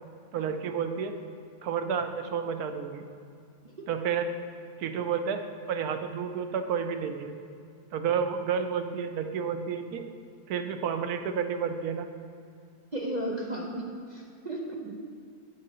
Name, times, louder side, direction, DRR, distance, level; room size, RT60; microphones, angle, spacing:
voice 1, 0.3-1.1 1.6-3.1 3.9-4.3 4.8-7.4 7.9-10.1 10.5-12.1 14.8-15.0, right 7 dB, 85° right, 7 dB, 1.1 m, -30 dB
voice 2, 12.9-15.1, right 1 dB, 50° right, -1 dB, 0.5 m, -35 dB
7.8 x 6.4 x 4.2 m, 2.4 s
omnidirectional pair, 1.6 m